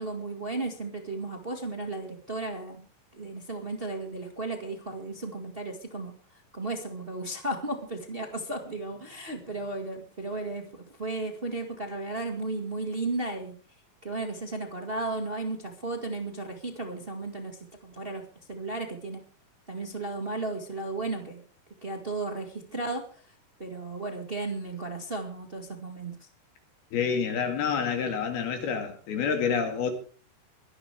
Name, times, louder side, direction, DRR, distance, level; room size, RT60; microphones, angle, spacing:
voice 1, 0.0-2.8 3.1-6.1 6.5-13.5 14.0-18.2 18.5-19.2 19.7-21.4 21.8-23.0 23.6-26.2, right 2 dB, 50° right, 0.6 m, -34 dB
voice 2, 26.9-29.9, left 6 dB, 65° left, 4.0 m, -28 dB
23.5 x 11.5 x 3.5 m
omnidirectional pair, 4.9 m